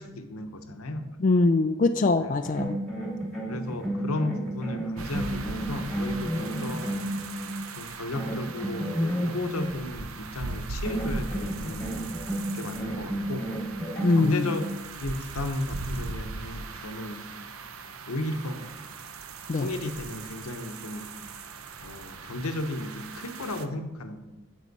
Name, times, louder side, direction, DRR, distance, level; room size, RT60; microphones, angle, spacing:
voice 1, 0.0-1.0 2.2-2.3 3.5-7.0 7.8-12.0 12.5-13.5 14.0-14.7 15.0-17.3 18.1-18.7 19.5-21.1 21.8-24.2, left 2 dB, 90° left, 7 dB, 0.9 m, -34 dB
voice 2, 1.2-2.8 14.0-14.6 19.5-19.7, left 3 dB, 35° left, 6 dB, 0.3 m, -23 dB
sound 1, 2.4-7.6 8.1-9.7 10.8-14.7, right 1 dB, ahead, 2.3 m, -32 dB
sound 2, 5.0-23.7, right 4 dB, 80° right, 0.7 m, -39 dB
9.7 x 7.4 x 4.1 m, 1.0 s
head